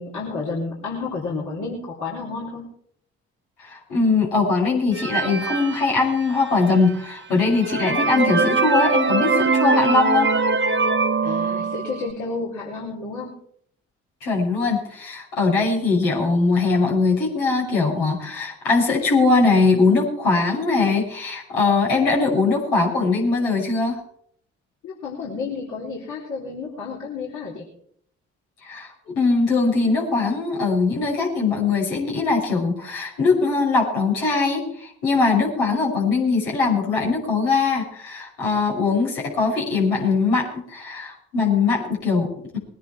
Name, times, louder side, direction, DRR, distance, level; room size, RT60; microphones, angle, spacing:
voice 1, 0.0-2.6 11.2-13.3 24.8-27.6, left 4 dB, 60° left, -5 dB, 4.2 m, -31 dB
voice 2, 3.6-10.3 14.2-24.0 28.6-42.6, left 4 dB, 75° left, -3 dB, 6.0 m, -21 dB
sound 1, 4.9-6.6 7.1-7.2 7.6-12.1, right 4 dB, 35° right, 1.5 m, -22 dB
21.5 x 10.5 x 4.5 m, 0.63 s
hypercardioid pair, 45°, 34 cm